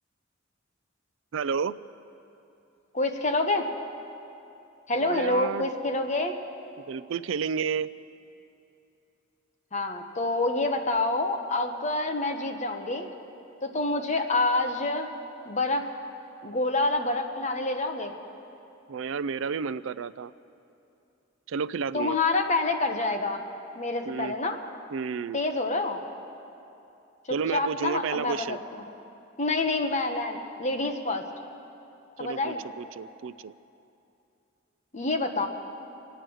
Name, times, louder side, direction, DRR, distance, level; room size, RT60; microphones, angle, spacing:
voice 1, 1.3-1.7 4.9-5.7 6.9-7.9 18.9-20.3 21.5-22.2 24.1-24.3 24.9-25.4 27.3-28.6 32.2-33.5, right 6 dB, 75° right, 17 dB, 0.4 m, -31 dB
voice 2, 2.9-3.7 4.9-6.3 9.7-13.1 13.6-15.1 15.5-15.9 16.4-18.1 21.9-23.4 23.8-24.6 25.3-26.0 27.3-28.6 29.4-31.2 32.2-32.6 34.9-35.5, left 2 dB, 35° left, 5 dB, 1.2 m, -27 dB
25.0 x 9.2 x 6.3 m, 2.8 s
head